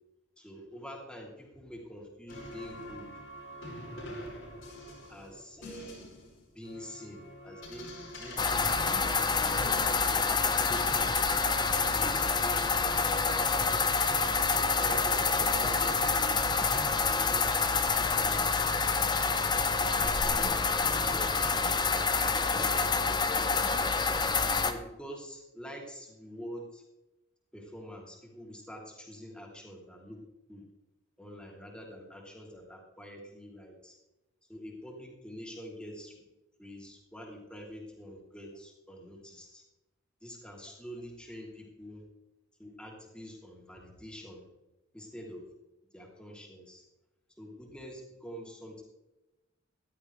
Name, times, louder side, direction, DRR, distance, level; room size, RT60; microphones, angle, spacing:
voice 1, 0.4-3.1 5.1-6.1 6.5-10.3 10.7-11.6 11.9-13.5 14.5-17.5 18.1-19.3 19.7-21.8 22.5-24.2 24.6-26.8 27.5-30.2 30.5-30.6 31.2-33.9 34.5-36.2 36.6-39.6 40.2-42.0 42.6-44.4 44.9-45.4 45.9-46.8 47.4-48.8, equal, 5° left, -1 dB, 2.9 m, -46 dB
sound 1, 2.3-12.9, left 1 dB, 80° left, 5.1 m, -46 dB
sound 2, 8.4-24.7, left 4 dB, 20° left, 0.8 m, -27 dB
15.0 x 12.0 x 3.2 m, 0.98 s
head